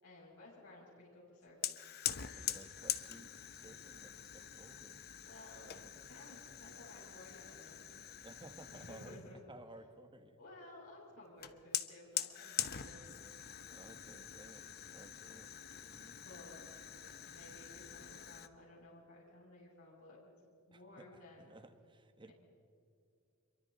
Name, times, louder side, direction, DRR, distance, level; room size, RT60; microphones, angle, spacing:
voice 1, 0.0-1.8 5.2-7.8 8.7-9.4 10.4-13.1 16.2-16.6 17.3-20.2 20.7-21.5 22.2-22.3, left 1 dB, 75° left, -5 dB, 6.8 m, -56 dB
Fire, 1.6-9.3 11.4-18.5, left 11 dB, 45° left, 0.9 m, -44 dB
voice 2, 2.4-5.1 5.6-5.8 8.2-9.2 9.5-10.4 13.7-14.7 14.9-16.2 20.7-22.3, right 2 dB, 20° right, 8 dB, 1.4 m, -57 dB
27.5 x 23.5 x 4.1 m, 2.5 s
head